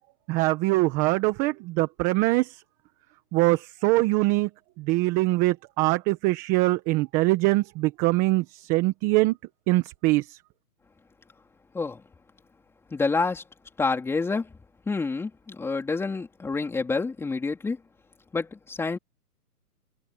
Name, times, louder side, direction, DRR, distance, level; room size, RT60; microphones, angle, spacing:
voice 1, 0.3-2.4 3.3-4.5 4.9-8.4 8.7-9.3 9.7-10.2, right 20 dB, 15° right, 1.3 m, -23 dB
voice 2, 12.9-13.4 13.8-14.5 14.9-17.8 18.3-19.0, left 4 dB, 5° left, 4.0 m, -28 dB
hypercardioid pair, 155°, 48 cm